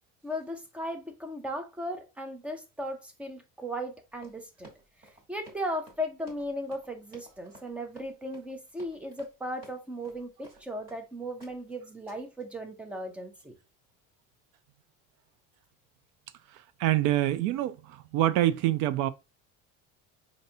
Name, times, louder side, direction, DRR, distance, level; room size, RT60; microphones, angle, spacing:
voice 1, 0.2-4.7 5.0-13.5, equal, 5° right, 0.4 m, -37 dB
Run, 4.1-11.1 11.4-11.7 12.1-12.4, right 2 dB, 25° right, 1.3 m, -55 dB
voice 2, 16.5-19.1, right 14 dB, 65° right, 0.5 m, -26 dB
5.5 x 2.6 x 2.6 m
cardioid pair, 175°, 32 cm